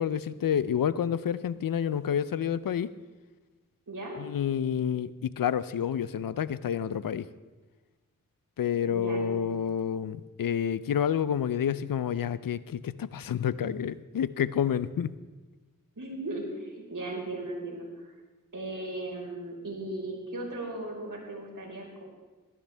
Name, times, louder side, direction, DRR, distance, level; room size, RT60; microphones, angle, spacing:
voice 1, 0.0-2.9 4.2-7.3 8.6-15.2, left 8 dB, 85° left, 16 dB, 0.5 m, -29 dB
voice 2, 3.9-4.2 8.7-9.6 16.0-18.1 18.5-22.0, right 2 dB, 65° right, -2 dB, 4.4 m, -37 dB
17.0 x 13.5 x 3.4 m, 1.2 s
cardioid pair, 40°, 33 cm